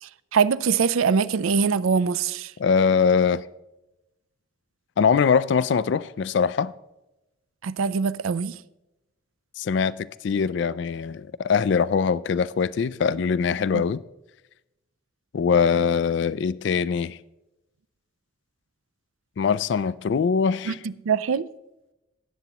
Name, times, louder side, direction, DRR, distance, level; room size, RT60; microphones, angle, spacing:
voice 1, 0.0-2.5 7.6-8.6 13.7-13.8 20.6-21.5, right 6 dB, 80° right, 0.4 m, -23 dB
voice 2, 2.6-3.4 5.0-6.7 9.6-14.0 15.3-17.2 19.4-20.8, left 6 dB, 60° left, 0.3 m, -22 dB
18.0 x 8.0 x 3.0 m
head